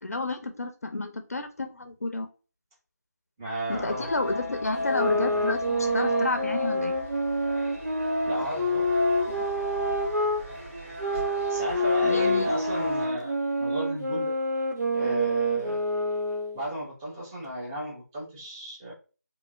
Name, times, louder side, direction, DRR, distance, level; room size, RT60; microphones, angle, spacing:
voice 1, 0.0-2.3 3.7-7.0 9.3-9.4 12.0-12.5, left 2 dB, 60° left, 6 dB, 0.5 m, -31 dB
voice 2, 3.4-4.1 8.3-8.9 11.5-14.3 14.9-15.8 16.5-18.9, right 1 dB, 10° right, -5 dB, 0.7 m, -34 dB
sound 1, 3.7-13.1, left 1 dB, 45° right, 1.4 m, -33 dB
sound 2, 4.8-10.4 11.0-16.6, equal, 80° right, 0.8 m, -27 dB
2.8 x 2.6 x 2.4 m, 0.34 s
figure-of-eight pair, 160°, 9 cm